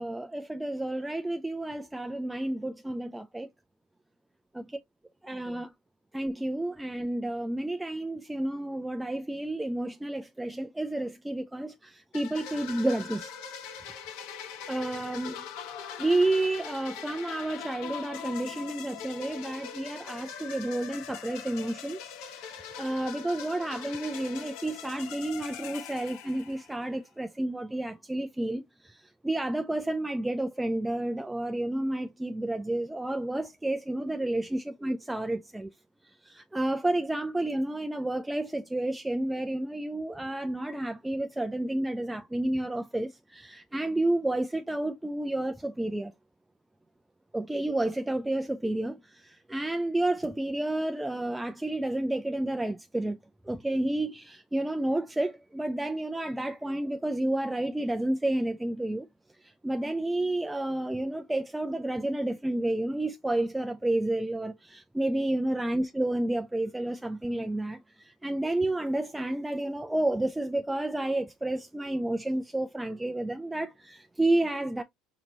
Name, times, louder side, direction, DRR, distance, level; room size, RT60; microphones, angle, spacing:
voice 1, 0.0-3.5 4.5-4.8 5.2-5.7 6.1-13.3 14.7-15.4 16.0-35.7 36.0-46.1 47.3-53.2 53.4-59.1 59.4-74.8, right 1 dB, 10° right, 0.5 m, -30 dB
sound 1, 12.1-26.9, left 7 dB, 70° left, 1.2 m, -42 dB
4.4 x 3.9 x 2.8 m
hypercardioid pair, 75°, 0 cm